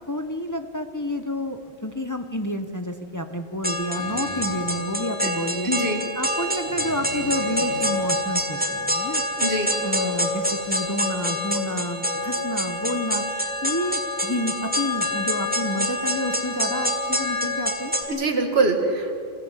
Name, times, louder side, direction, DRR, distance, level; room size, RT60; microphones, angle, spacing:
voice 1, 0.1-9.2 9.8-17.9, equal, 20° left, 7 dB, 1.0 m, -30 dB
sound 1, 3.6-18.0, left 1 dB, 10° right, 2.5 m, -26 dB
sound 2, 3.9-4.7 5.3-5.4 6.3-8.1, equal, 40° left, 4.6 m, -39 dB
voice 2, 5.6-6.0 9.4-9.7 18.1-19.1, right 2 dB, 75° right, 3 dB, 2.3 m, -23 dB
28.0 x 16.0 x 8.1 m, 2.3 s
omnidirectional pair, 1.1 m